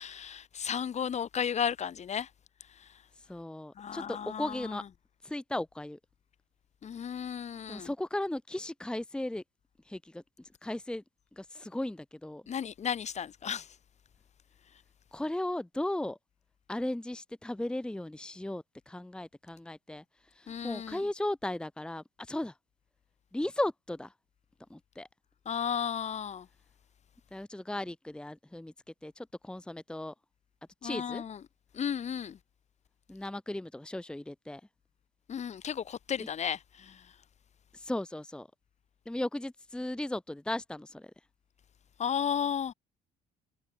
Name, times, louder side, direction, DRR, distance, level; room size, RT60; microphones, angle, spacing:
voice 1, 0.0-2.3 3.8-4.8 6.8-7.9 12.5-13.7 20.5-21.0 25.5-26.5 30.8-31.4 31.7-32.4 35.3-37.0 42.0-42.7, left 8 dB, 45° left, 2.0 m, -34 dB
voice 2, 3.3-4.8 5.2-6.0 7.7-9.4 9.9-10.2 10.6-11.0 11.4-12.4 15.1-16.2 16.7-20.0 20.4-22.5 23.3-24.1 24.7-25.1 27.3-28.7 29.0-30.1 30.8-31.2 33.1-34.6 36.2-36.3 37.7-38.5 39.1-41.1, left 1 dB, 5° left, 1.2 m, -36 dB
cardioid pair, 110°, 17 cm